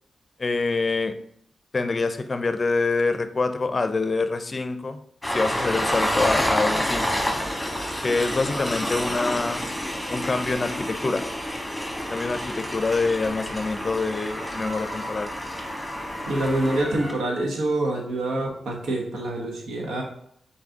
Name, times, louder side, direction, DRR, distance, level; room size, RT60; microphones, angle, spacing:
voice 1, 0.4-1.1 1.7-5.0 5.3-7.1 8.0-9.6 10.1-11.2 12.1-15.3, left 3 dB, 45° left, 9 dB, 0.5 m, -25 dB
Train, 5.2-17.1, equal, 5° left, 1.5 m, -29 dB
voice 2, 16.3-20.0, right 1 dB, 90° right, 0 dB, 1.0 m, -26 dB
3.9 x 3.8 x 3.6 m, 0.69 s
cardioid pair, 50°, 0 cm